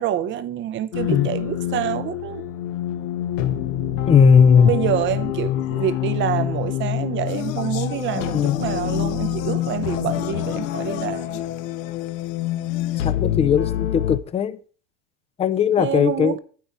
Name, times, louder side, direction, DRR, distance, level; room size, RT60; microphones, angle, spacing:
voice 1, 0.0-2.4 4.6-11.4 15.8-16.4, right 10 dB, 35° right, 0.6 m, -27 dB
sound 1, 0.9-14.2, left 11 dB, 85° left, 1.2 m, -26 dB
voice 2, 4.1-4.8 8.3-8.6 13.0-14.6 15.4-16.3, left 7 dB, 15° left, 0.4 m, -17 dB
sound 2, 7.3-13.1, left 14 dB, 55° left, 0.7 m, -35 dB
9.2 x 7.8 x 4.4 m
supercardioid pair, 115°, 37 cm